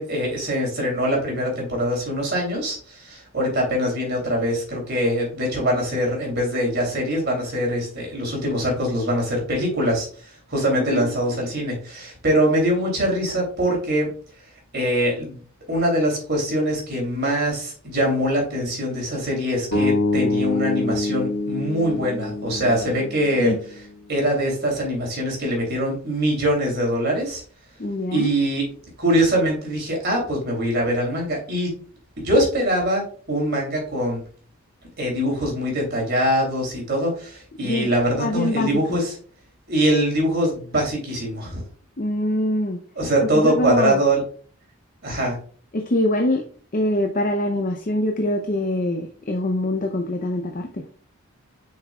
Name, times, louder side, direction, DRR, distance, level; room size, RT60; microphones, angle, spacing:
voice 1, 0.0-14.1 14.7-15.4 15.7-23.5 24.1-27.4 28.1-28.7 29.0-31.7 32.2-34.2 35.0-39.2 39.7-41.6 42.9-44.2 45.0-45.4, equal, 45° right, 0 dB, 3.1 m, -23 dB
voice 2, 10.8-11.1 23.4-23.6 27.8-28.3 37.6-37.9 38.2-38.8 42.0-42.8 43.3-44.0 45.7-46.4 46.7-50.8, left 1 dB, 35° left, 4 dB, 0.6 m, -24 dB
sound 1, 19.7-23.9, left 2 dB, 70° left, 3.2 m, -25 dB
7.6 x 5.8 x 2.3 m, 0.43 s
head